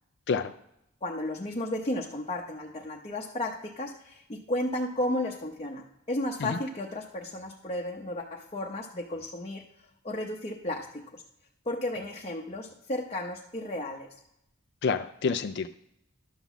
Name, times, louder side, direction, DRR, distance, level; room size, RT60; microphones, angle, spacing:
voice 1, 1.0-9.6 10.0-11.2 11.7-14.1, left 1 dB, 30° left, -1 dB, 0.8 m, -33 dB
voice 2, 14.8-15.7, left 5 dB, 55° left, 7 dB, 0.4 m, -28 dB
11.5 x 4.0 x 7.1 m, 0.83 s
head